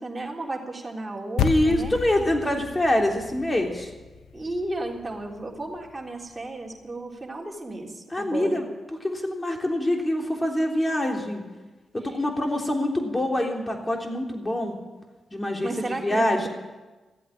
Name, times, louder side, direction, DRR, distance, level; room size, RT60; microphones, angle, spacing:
voice 1, 0.0-1.9 4.3-8.6 15.6-16.4, right 2 dB, 25° right, -1 dB, 3.6 m, -34 dB
sound 1, 1.4-5.9, left 7 dB, 90° left, 0.7 m, -32 dB
voice 2, 1.4-3.9 8.1-8.6 9.0-11.4 11.9-14.8 15.3-16.5, left 1 dB, 25° left, 2 dB, 3.4 m, -25 dB
15.0 x 8.4 x 9.9 m, 1.2 s
supercardioid pair, 50°, 0 cm